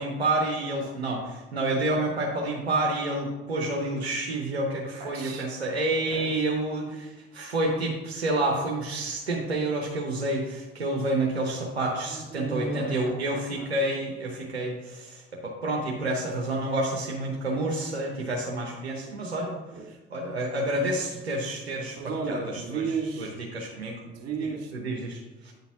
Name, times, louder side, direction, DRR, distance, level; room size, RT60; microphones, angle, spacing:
voice 1, 0.0-19.6 20.1-22.0 22.3-22.4 22.7-22.8 23.2-24.0 24.7-25.5, right 2 dB, 90° right, -1 dB, 0.9 m, -29 dB
voice 2, 5.0-5.5 6.1-6.3 11.9-14.0 19.7-20.0 22.0-23.4 24.0-24.7, right 4 dB, 55° right, 2 dB, 1.9 m, -34 dB
8.7 x 4.1 x 5.7 m, 1.1 s
figure-of-eight pair, 50°, 31 cm